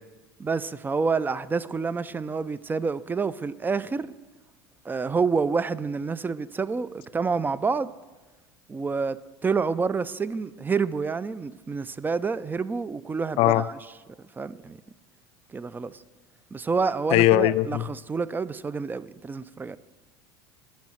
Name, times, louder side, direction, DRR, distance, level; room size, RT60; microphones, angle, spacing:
voice 1, 0.4-4.1 4.8-7.9 8.7-13.7 14.4-14.8 15.5-16.0 16.5-19.8, right 4 dB, 15° right, 0.4 m, -28 dB
voice 2, 17.1-17.9, left 16 dB, 55° left, 0.4 m, -20 dB
10.5 x 5.5 x 7.8 m
hypercardioid pair, 85°, 12 cm